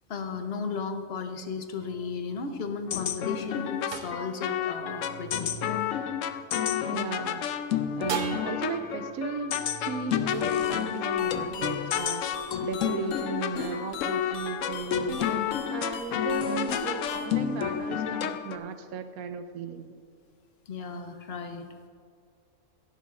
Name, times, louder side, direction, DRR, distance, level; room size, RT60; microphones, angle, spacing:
voice 1, 0.1-5.5 20.7-21.7, left 5 dB, 50° left, 7 dB, 1.0 m, -35 dB
sound 1, 1.8-7.1 8.1-11.4, right 5 dB, 50° right, 0.9 m, -41 dB
sound 2, 2.9-18.6, left 9 dB, 70° left, 0.9 m, -30 dB
voice 2, 6.9-7.5 8.0-12.3 12.6-15.4 15.7-19.9, right 5 dB, 90° right, 9 dB, 1.1 m, -36 dB
sound 3, 10.3-17.3, left 5 dB, 85° left, 1.3 m, -40 dB
16.5 x 11.0 x 2.5 m, 2.2 s
omnidirectional pair, 1.5 m